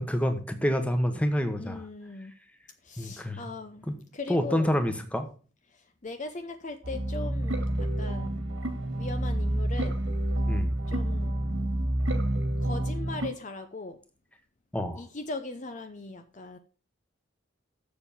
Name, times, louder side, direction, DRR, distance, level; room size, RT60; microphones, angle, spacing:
voice 1, 0.0-1.8 3.0-3.4 3.9-4.0 4.3-5.3 10.5-10.7 14.7-15.0, equal, 5° left, 7 dB, 1.2 m, -27 dB
voice 2, 1.6-2.3 2.8-3.9 4.1-4.7 5.7-8.4 9.0-10.0 10.9-11.4 12.6-14.0 14.9-16.6, left 3 dB, 40° left, 8 dB, 0.7 m, -39 dB
sound 1, 6.8-13.3, right 1 dB, 75° right, 2.1 m, -28 dB
7.3 x 6.8 x 7.0 m, 0.38 s
head